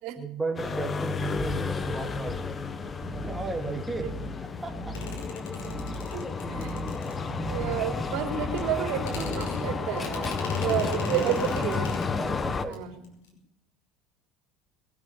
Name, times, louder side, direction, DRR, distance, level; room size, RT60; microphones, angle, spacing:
voice 1, 0.2-2.6 3.2-4.1 4.6-5.0 10.7-10.8 11.1-11.4 12.1-12.8, right 3 dB, 10° right, 2 dB, 2.0 m, -35 dB
sound 1, 0.6-12.7, left 5 dB, 25° left, 1.2 m, -32 dB
sound 2, 3.0-9.9, right 3 dB, 40° right, 2.3 m, -40 dB
sound 3, 4.9-7.7 8.6-8.7 9.0-12.3 12.6-12.8 13.0-13.3, left 4 dB, 90° left, 5.3 m, -41 dB
voice 2, 6.1-6.8 7.5-11.8 12.7-13.1, right 10 dB, 70° right, 3 dB, 4.0 m, -31 dB
22.0 x 9.4 x 5.7 m, 0.75 s
supercardioid pair, 105°, 0 cm